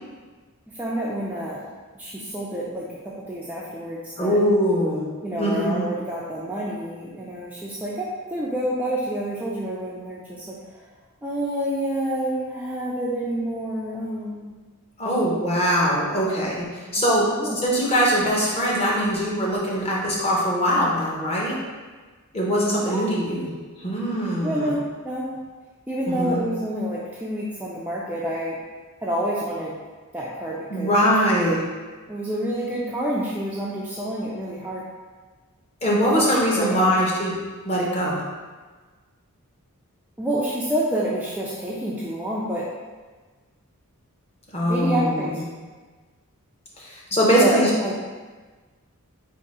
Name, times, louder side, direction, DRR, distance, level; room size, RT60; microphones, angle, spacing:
voice 1, 0.7-1.6 2.0-4.4 5.2-10.9 11.2-14.6 17.0-17.6 22.8-23.0 24.4-24.8 25.0-25.3 25.9-28.6 29.0-29.7 30.1-31.0 32.1-34.8 36.1-36.9 40.2-42.7 44.7-45.5 47.4-48.0, right 1 dB, 5° right, -6 dB, 0.3 m, -28 dB
voice 2, 4.2-5.1 5.4-5.9 15.0-21.6 22.3-23.5 23.8-24.8 26.0-26.4 30.7-31.6 35.8-37.3 37.6-38.2 44.5-45.4 46.8-47.7, equal, 25° left, -4 dB, 0.8 m, -22 dB
3.6 x 2.6 x 4.1 m, 1.4 s
head